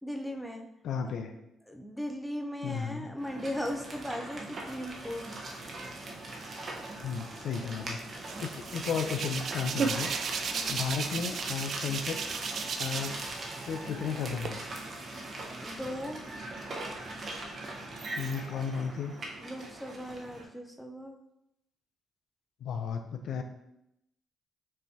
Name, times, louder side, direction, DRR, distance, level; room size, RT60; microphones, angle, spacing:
voice 1, 0.0-0.6 1.7-5.2 10.5-10.8 15.6-16.3 19.4-21.2, equal, ahead, 2 dB, 0.5 m, -38 dB
voice 2, 0.8-1.3 2.6-3.1 7.0-8.0 8.4-10.1 10.7-12.2 12.8-13.2 13.7-14.6 18.2-19.1 22.6-23.4, left 6 dB, 70° left, 6 dB, 0.4 m, -34 dB
sound 1, 3.2-20.4, right 2 dB, 45° right, 0.9 m, -41 dB
Hands, 8.3-13.3 13.6-14.5, right 5 dB, 60° right, 0.4 m, -34 dB
5.4 x 3.1 x 2.8 m, 0.83 s
cardioid pair, 90°, 0 cm